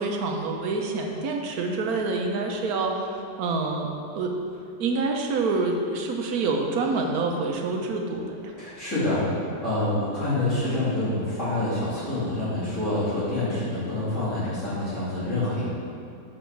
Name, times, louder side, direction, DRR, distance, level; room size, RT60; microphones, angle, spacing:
voice 1, 0.0-3.1 3.4-4.3 4.8-8.5, right 3 dB, 65° right, 2 dB, 1.3 m, -27 dB
voice 2, 8.6-15.7, left 2 dB, 45° left, -13 dB, 2.8 m, -27 dB
8.3 x 6.3 x 4.6 m, 2.4 s
omnidirectional pair, 1.8 m